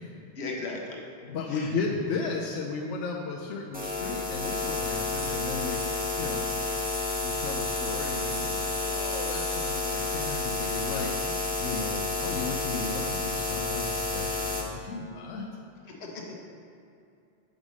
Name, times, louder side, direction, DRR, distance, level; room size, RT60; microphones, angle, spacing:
voice 1, 0.3-1.0 1.5-1.7 10.9-11.4 15.9-16.3, left 3 dB, 70° left, 0 dB, 1.3 m, -38 dB
voice 2, 1.2-6.5 7.1-11.3 11.6-15.5, left 4 dB, 90° left, -1 dB, 0.9 m, -35 dB
sound 1, 3.7-14.6, left 3 dB, 10° right, 0.9 m, -30 dB
5.4 x 5.2 x 6.2 m, 2.6 s
omnidirectional pair, 1.2 m